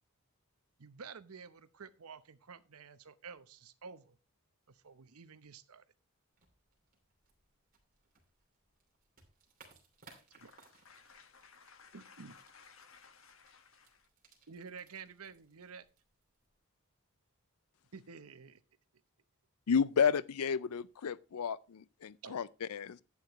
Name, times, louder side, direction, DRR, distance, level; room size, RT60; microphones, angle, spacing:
voice 1, 0.8-4.2 4.7-5.8 10.4-10.5 11.9-12.4 14.5-15.9 17.9-18.6 22.2-22.4, right 5 dB, 80° right, 0.8 m, -50 dB
sound 1, 6.3-16.6, right 4 dB, 40° right, 2.8 m, -65 dB
voice 2, 10.3-14.1, left 5 dB, 60° left, 1.6 m, -59 dB
voice 3, 19.7-23.0, left 6 dB, 85° left, 0.5 m, -32 dB
11.5 x 8.8 x 3.1 m
head